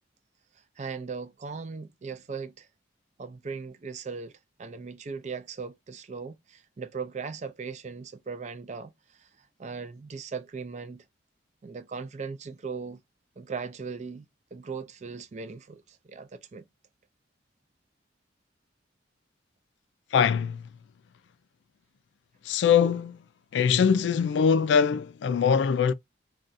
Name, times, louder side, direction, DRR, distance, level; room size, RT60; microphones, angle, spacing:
voice 1, 0.8-2.7 3.2-11.0 11.6-13.0 13.4-16.6, right 5 dB, 40° right, 0.4 m, -38 dB
voice 2, 20.1-20.6 22.5-23.2 23.5-25.9, left 7 dB, 70° left, 0.3 m, -22 dB
2.5 x 2.3 x 3.9 m
head